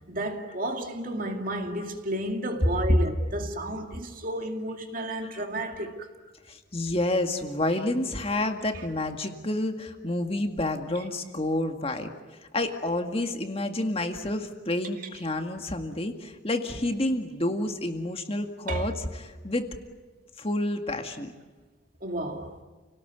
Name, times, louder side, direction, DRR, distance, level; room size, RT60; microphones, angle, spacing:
voice 1, 0.1-6.1 18.7-18.9 22.0-22.6, right 1 dB, 45° right, 2.4 m, -32 dB
voice 2, 6.5-12.1 12.5-19.7 20.4-21.3, left 1 dB, 30° left, 2.0 m, -29 dB
30.0 x 18.5 x 9.4 m
head